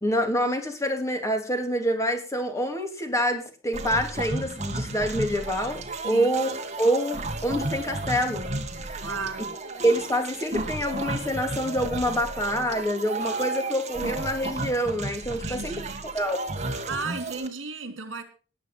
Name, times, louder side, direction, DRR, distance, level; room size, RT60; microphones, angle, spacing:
voice 1, 0.0-6.5 6.8-8.5 8.9-9.0 9.8-15.7 16.1-16.5, equal, 15° left, 2.9 m, -26 dB
sound 1, 3.7-17.5, right 2 dB, 35° right, 2.0 m, -33 dB
voice 2, 6.0-6.4 9.0-9.6 15.3-16.0 16.9-18.2, right 4 dB, 75° right, 3.5 m, -34 dB
19.0 x 8.1 x 5.6 m
head